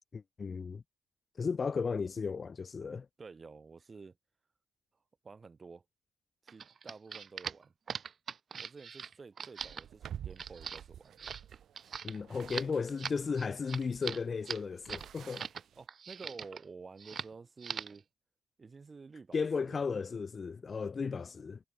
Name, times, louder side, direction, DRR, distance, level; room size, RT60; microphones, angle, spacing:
voice 1, 0.1-0.8 1.4-3.1 12.0-15.5 19.3-21.6, left 5 dB, 40° left, 0.4 m, -35 dB
voice 2, 3.2-4.2 5.2-5.8 6.4-7.7 8.6-11.3 15.8-18.1 18.6-19.8, right 4 dB, 30° right, 3.9 m, -51 dB
sound 1, 6.5-15.6 15.9-16.6 17.0-17.3 17.6-18.0, right 6 dB, 50° right, 1.3 m, -41 dB
sound 2, 9.6-15.9, right 10 dB, 65° right, 3.4 m, -50 dB
cardioid pair, 90°, 0 cm